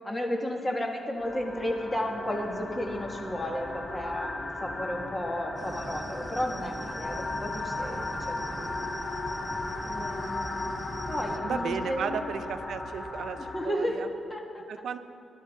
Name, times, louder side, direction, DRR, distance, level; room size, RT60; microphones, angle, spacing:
voice 1, 0.0-8.8 9.8-10.7 11.1-12.3 13.4-14.6, left 1 dB, 20° left, 1 dB, 1.8 m, -33 dB
sound 1, 1.2-13.7, left 2 dB, 40° left, 1.8 m, -36 dB
sound 2, 5.6-11.4, right 2 dB, 25° right, 0.7 m, -43 dB
voice 2, 11.4-14.1 14.7-15.0, right 6 dB, 80° right, 9 dB, 0.7 m, -34 dB
19.0 x 11.5 x 3.8 m, 2.7 s
cardioid pair, 120°, 0 cm